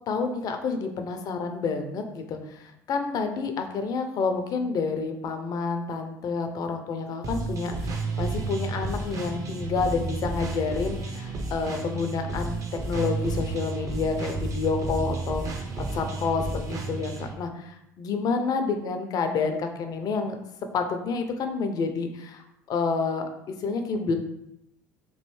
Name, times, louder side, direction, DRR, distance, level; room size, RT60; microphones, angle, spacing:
voice 1, 0.0-7.9 8.2-12.5 12.8-15.7 15.9-20.4 20.7-24.1, left 4 dB, 50° left, 6 dB, 0.5 m, -29 dB
sound 1, 7.2-17.3, right 3 dB, 40° right, 0.7 m, -32 dB
3.1 x 2.6 x 3.1 m, 0.80 s
hypercardioid pair, 75°, 8 cm